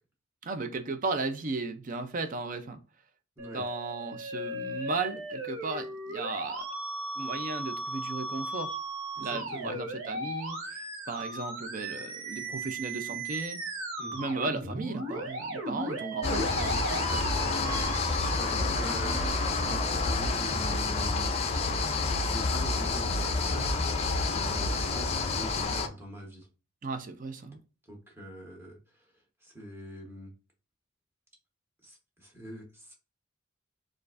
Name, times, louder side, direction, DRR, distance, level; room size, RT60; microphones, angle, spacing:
voice 1, 0.4-2.8 3.5-6.7 7.2-8.8 9.2-13.6 14.1-17.0 26.8-27.6, right 3 dB, 40° right, 0.5 m, -35 dB
Musical instrument, 3.4-19.3, right 2 dB, 80° right, 1.0 m, -37 dB
voice 2, 9.2-9.8 14.0-14.3 17.0-21.3 22.2-23.9 24.3-26.5 27.9-29.1 29.4-30.3 31.8-32.9, right 1 dB, 10° right, 1.0 m, -43 dB
sound 1, 16.2-25.9, left 3 dB, 30° left, 0.5 m, -29 dB
6.7 x 2.5 x 2.5 m
head